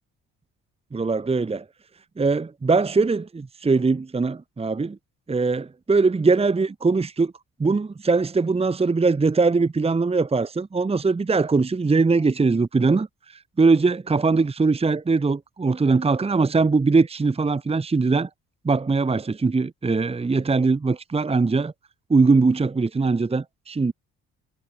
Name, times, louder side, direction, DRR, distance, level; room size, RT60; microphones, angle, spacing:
voice 1, 0.9-1.6 2.2-5.0 5.3-7.3 7.6-13.1 13.6-18.3 18.6-21.7 22.1-23.9, right 4 dB, 20° right, 1.1 m, -21 dB
cardioid pair, 90°, 30 cm